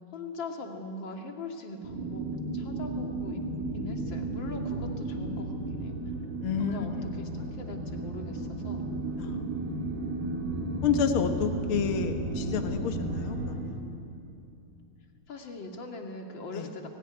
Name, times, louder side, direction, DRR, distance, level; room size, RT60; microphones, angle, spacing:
voice 1, 0.1-3.4 3.7-6.0 6.6-8.8 15.3-16.9, left 2 dB, 35° left, 2 dB, 2.3 m, -41 dB
sound 1, 1.8-13.6, right 2 dB, 85° right, 5.5 m, -34 dB
voice 2, 6.4-7.1 9.2-9.5 10.8-13.7 16.5-16.7, left 7 dB, 85° left, 6 dB, 1.1 m, -30 dB
29.5 x 18.0 x 9.8 m, 2.8 s
omnidirectional pair, 4.4 m